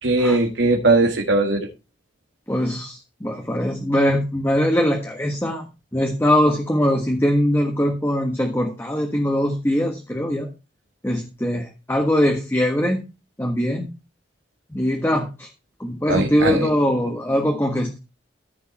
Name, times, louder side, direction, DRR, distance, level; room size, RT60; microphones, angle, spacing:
voice 1, 0.0-1.7 16.1-16.7, right 2 dB, 75° right, 1.7 m, -19 dB
voice 2, 2.5-5.6 5.9-10.5 11.0-13.0 13.4-13.9 14.7-15.5 15.8-18.0, equal, 15° left, 1.4 m, -21 dB
14.5 x 5.3 x 4.1 m
head